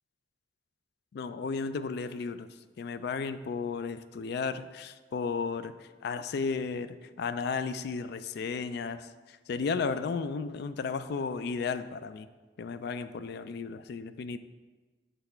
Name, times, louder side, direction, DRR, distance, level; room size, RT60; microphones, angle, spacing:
voice 1, 1.1-2.5 2.8-5.7 6.0-12.3 12.6-14.4, left 5 dB, 60° left, 12 dB, 0.3 m, -34 dB
7.9 x 3.4 x 4.4 m, 1.3 s
head